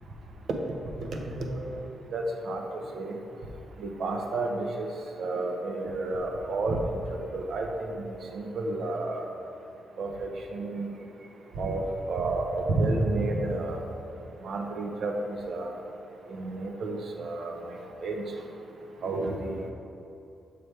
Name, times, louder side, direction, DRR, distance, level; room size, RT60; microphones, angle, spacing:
voice 1, 1.0-1.8 2.1-3.2 3.8-4.9 5.2-6.9 7.3-8.0 8.3-9.3 10.0-10.9 11.6-13.8 14.4-15.8 16.3-18.2 19.0-19.6, right 2 dB, 60° right, 2 dB, 0.6 m, -31 dB
6.6 x 3.3 x 4.4 m, 2.9 s
cardioid pair, 140°, 0 cm